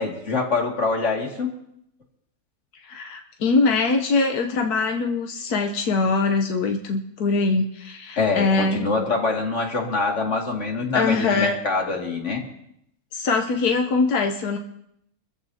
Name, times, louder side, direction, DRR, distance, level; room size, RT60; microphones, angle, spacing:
voice 1, 0.0-1.5 8.2-12.4, left 4 dB, 50° left, 0 dB, 2.5 m, -24 dB
voice 2, 2.8-8.9 10.9-11.6 13.1-14.6, left 4 dB, 90° left, 3 dB, 1.5 m, -22 dB
26.5 x 14.5 x 2.8 m, 0.74 s
omnidirectional pair, 1.6 m